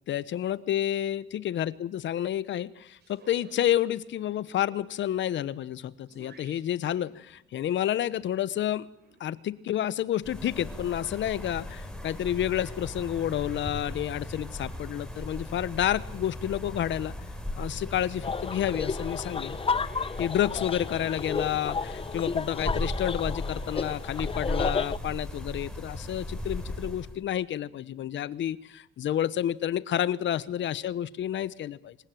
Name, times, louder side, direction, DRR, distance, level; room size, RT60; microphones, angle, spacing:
voice 1, 0.1-8.9 9.2-17.1 17.6-19.6 20.2-32.0, left 11 dB, 70° left, 17 dB, 1.1 m, -30 dB
sound 1, 3.0-9.3, right 4 dB, 55° right, 5.4 m, -57 dB
sound 2, 10.2-27.2, left 1 dB, 5° left, 5.8 m, -37 dB
sound 3, 18.2-25.0, left 5 dB, 30° left, 0.8 m, -32 dB
26.0 x 16.0 x 9.2 m, 0.77 s
cardioid pair, 90°, 20 cm